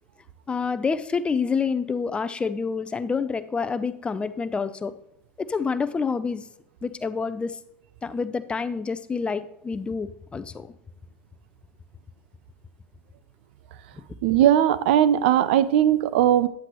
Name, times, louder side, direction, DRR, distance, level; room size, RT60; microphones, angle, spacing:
voice 1, 0.5-4.9 5.4-6.5 6.8-7.6 8.0-10.7 13.9-14.0, left 5 dB, 20° left, 0.5 m, -28 dB
voice 2, 14.2-16.5, right 11 dB, 75° right, 0.5 m, -19 dB
9.6 x 7.8 x 3.0 m
supercardioid pair, 100°, 6 cm